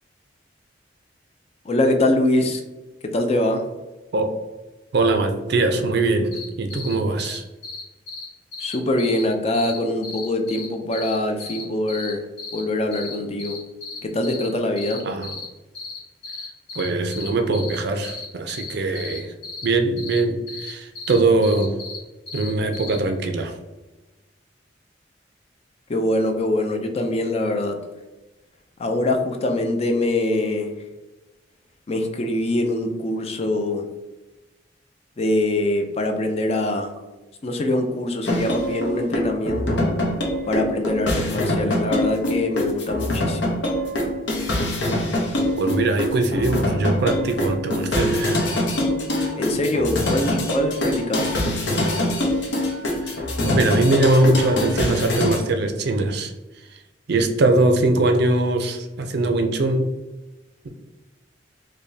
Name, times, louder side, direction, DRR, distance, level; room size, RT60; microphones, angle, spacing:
voice 1, 1.6-2.6 3.0-3.6 8.6-12.3 12.5-13.6 14.0-15.0 25.9-27.8 28.8-30.7 31.9-33.9 35.2-36.9 37.4-39.9 40.5-43.6 49.3-51.4, left 1 dB, 35° left, 4 dB, 0.4 m, -23 dB
voice 2, 4.9-6.3 6.6-7.4 15.0-15.3 16.7-19.3 19.6-21.8 22.3-23.6 45.6-48.4 53.0-56.3 56.7-56.8 57.1-59.9, right 2 dB, 60° right, 6 dB, 0.4 m, -21 dB
sound 1, 6.3-6.4 6.7-6.9 7.2-7.4 7.6-7.8 8.1-8.2 8.5-9.2 9.5-9.8 10.0-10.7 10.9-12.1 12.4-12.6 12.9-13.1 13.4-14.5 14.8-15.5 15.7-16.0 16.2-17.8 18.0-19.7 20.0-20.2 20.5-20.7 21.0-22.0 22.3-23.0, left 3 dB, 60° left, 1.3 m, -35 dB
sound 2, 38.2-55.4, left 1 dB, 75° left, 0.8 m, -24 dB
4.9 x 2.2 x 2.7 m, 1.1 s
head